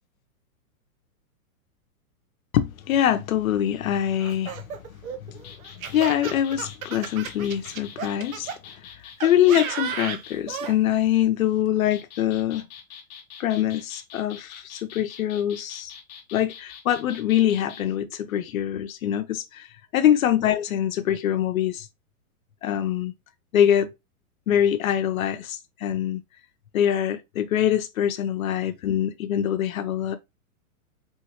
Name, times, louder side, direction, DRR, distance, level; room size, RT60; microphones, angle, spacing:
voice 1, 2.5-4.6 5.9-8.5 9.2-12.6 13.4-15.9 16.3-19.7 19.9-21.9 22.6-23.1 23.5-23.9 24.5-26.2 26.7-30.2, left 10 dB, 70° left, 0.7 m, -24 dB
Laughter, 4.2-8.6 9.2-10.8, right 8 dB, 65° right, 0.9 m, -34 dB
sound 1, 5.3-10.4 11.7-17.8, left 7 dB, 30° left, 0.8 m, -45 dB
4.6 x 3.1 x 3.0 m
hypercardioid pair, 165°, 44 cm